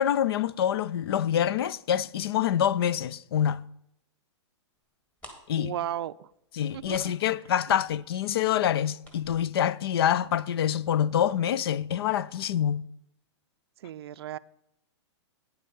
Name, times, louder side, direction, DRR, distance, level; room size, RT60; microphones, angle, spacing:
voice 1, 0.0-3.6 5.5-5.7 6.5-12.9, left 10 dB, 55° left, 0.4 m, -26 dB
sound 1, 4.9-5.0 5.2-10.7 11.0-11.1 11.5-11.8 12.1-12.2, equal, 10° left, 1.6 m, -52 dB
voice 2, 5.6-6.3 6.7-7.1 7.7-7.8 13.8-14.4, right 11 dB, 55° right, 0.4 m, -35 dB
9.5 x 7.8 x 5.4 m
hypercardioid pair, 160°, 15 cm